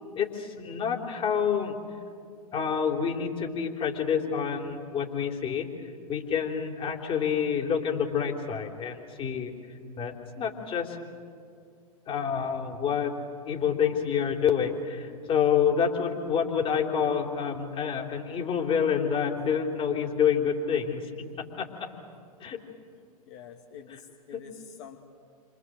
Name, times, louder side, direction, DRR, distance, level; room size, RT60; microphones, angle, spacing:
voice 1, 0.2-1.8 2.5-5.7 6.1-9.5 10.0-11.0 12.1-13.1 13.5-21.3 21.6-21.9 22.4-22.6 24.3-24.4, left 7 dB, 25° left, 3 dB, 3.7 m, -28 dB
voice 2, 23.3-25.0, left 7 dB, 50° left, 3 dB, 2.6 m, -47 dB
29.5 x 26.0 x 7.8 m, 2.3 s
figure-of-eight pair, 95°, 20 cm